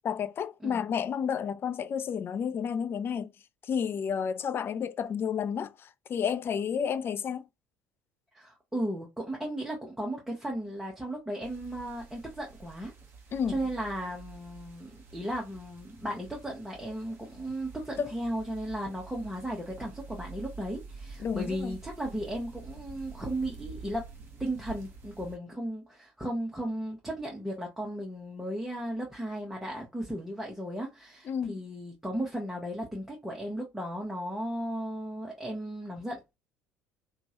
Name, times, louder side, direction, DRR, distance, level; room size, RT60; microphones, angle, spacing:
voice 1, 0.0-3.3 3.6-7.4 13.3-13.6 18.0-18.1 21.2-21.8 31.3-31.6, left 7 dB, 35° left, 0.3 m, -31 dB
voice 2, 8.3-12.9 13.5-24.1 24.4-36.4, right 1 dB, 5° right, 1.0 m, -35 dB
sound 1, 11.4-25.4, right 4 dB, 40° right, 1.2 m, -48 dB
2.9 x 2.4 x 2.9 m
figure-of-eight pair, 60°, 7 cm